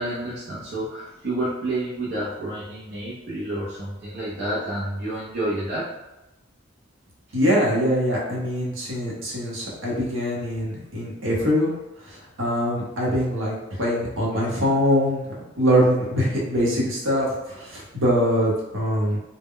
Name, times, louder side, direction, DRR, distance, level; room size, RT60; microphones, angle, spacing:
voice 1, 0.0-5.9, right 1 dB, 55° right, -7 dB, 0.6 m, -29 dB
voice 2, 7.3-11.7 12.4-13.5 13.8-15.2 15.6-19.2, equal, 85° right, -5 dB, 0.9 m, -23 dB
2.1 x 2.1 x 3.6 m, 0.98 s
head